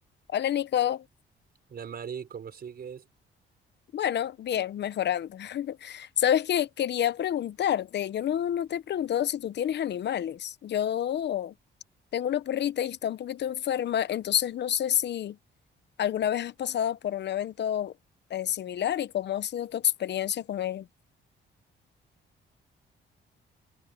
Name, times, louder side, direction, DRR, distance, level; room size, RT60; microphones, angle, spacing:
voice 1, 0.3-1.0 3.9-11.5 12.1-15.4 16.0-17.9 18.3-20.9, left 10 dB, 60° left, 0.9 m, -28 dB
voice 2, 1.7-3.1, right 7 dB, 50° right, 4.9 m, -39 dB
cardioid pair, 90°, 20 cm